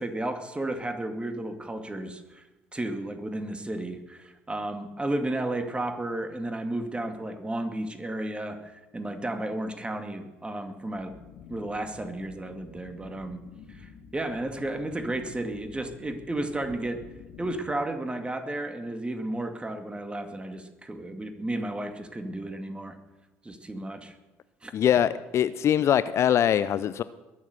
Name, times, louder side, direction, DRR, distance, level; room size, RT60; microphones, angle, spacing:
voice 1, 0.0-2.4 2.7-11.1 11.5-13.4 13.7-17.0 17.4-23.0 23.4-24.1 24.6-24.7, right 1 dB, 15° right, 7 dB, 2.2 m, -33 dB
sound 1, 11.0-17.6, left 6 dB, 70° left, 1.8 m, -49 dB
voice 2, 24.7-27.0, left 10 dB, 50° left, 15 dB, 0.5 m, -23 dB
21.5 x 7.4 x 6.9 m, 1.1 s
hypercardioid pair, 55°, 6 cm